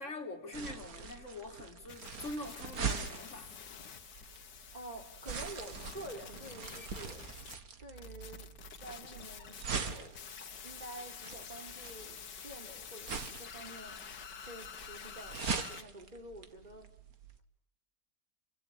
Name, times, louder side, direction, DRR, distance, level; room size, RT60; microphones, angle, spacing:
voice 1, 0.0-3.5, left 2 dB, 45° left, 4.0 m, -44 dB
sound 1, 0.5-17.4, right 5 dB, 60° right, 2.2 m, -43 dB
sound 2, 1.9-7.6 8.0-15.8, left 7 dB, 85° left, 2.0 m, -49 dB
voice 2, 4.7-7.2 7.8-8.5 8.8-14.0 14.5-16.9, right 1 dB, 25° right, 4.6 m, -49 dB
29.5 x 24.5 x 7.5 m
omnidirectional pair, 1.8 m